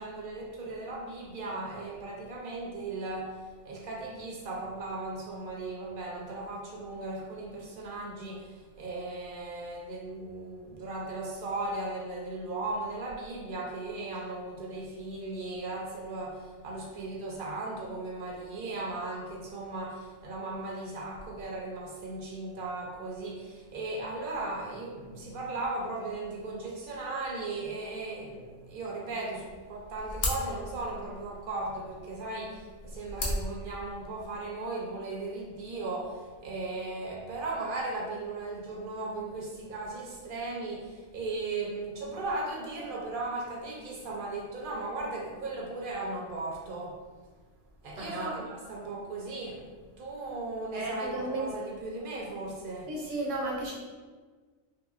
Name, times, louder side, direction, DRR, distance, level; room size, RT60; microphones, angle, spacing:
voice 1, 0.0-47.0 47.8-52.9, right 2 dB, 55° right, -1 dB, 0.7 m, -37 dB
sound 1, 29.4-34.4, left 1 dB, 60° left, 0.8 m, -37 dB
voice 2, 48.0-48.3 50.7-51.5 52.9-53.7, right 2 dB, 80° right, -3 dB, 1.1 m, -33 dB
2.9 x 2.7 x 2.4 m, 1.4 s
omnidirectional pair, 1.3 m